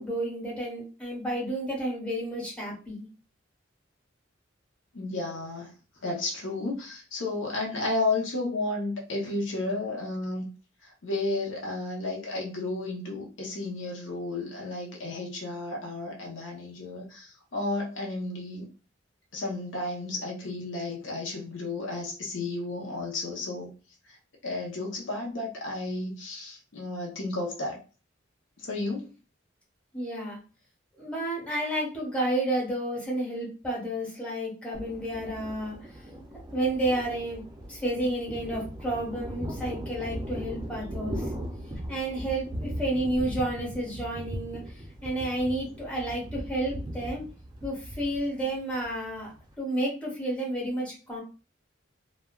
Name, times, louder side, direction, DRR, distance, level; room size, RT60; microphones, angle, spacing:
voice 1, 0.0-3.1 29.9-30.4 31.0-35.7 36.5-37.4 37.7-41.3 41.9-44.6 45.0-47.2 47.6-49.3 49.6-51.2, right 1 dB, 5° left, -4 dB, 1.1 m, -31 dB
voice 2, 4.9-5.7 6.0-10.4 10.8-18.7 19.3-23.7 24.1-24.2 24.4-27.8 28.6-29.1, left 2 dB, 75° left, -1 dB, 0.8 m, -32 dB
Thunder, 34.7-49.5, equal, 20° right, 0.4 m, -38 dB
3.1 x 2.1 x 2.3 m, 0.34 s
head